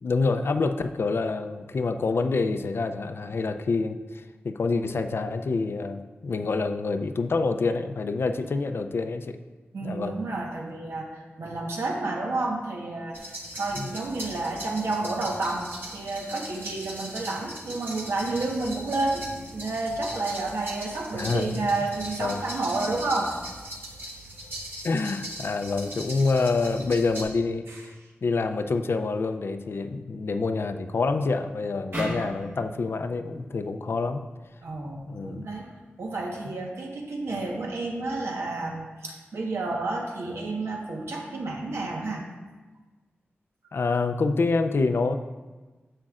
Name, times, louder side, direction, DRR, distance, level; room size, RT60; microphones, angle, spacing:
voice 1, 0.0-9.4 9.8-10.2 13.8-13.9 21.1-21.7 22.2-22.4 24.8-27.7 28.2-34.3 35.1-35.5 43.7-45.2, left 3 dB, 65° left, 8 dB, 0.5 m, -27 dB
voice 2, 9.7-19.2 19.5-23.4 27.7-27.8 34.6-35.7 36.0-42.3, right 2 dB, 90° right, 0 dB, 1.2 m, -30 dB
sound 1, 13.1-27.2, right 1 dB, 50° right, 1.4 m, -39 dB
sound 2, 31.9-35.2, equal, 70° right, 2.1 m, -38 dB
10.0 x 7.6 x 2.5 m, 1.3 s
wide cardioid pair, 110°, 4 cm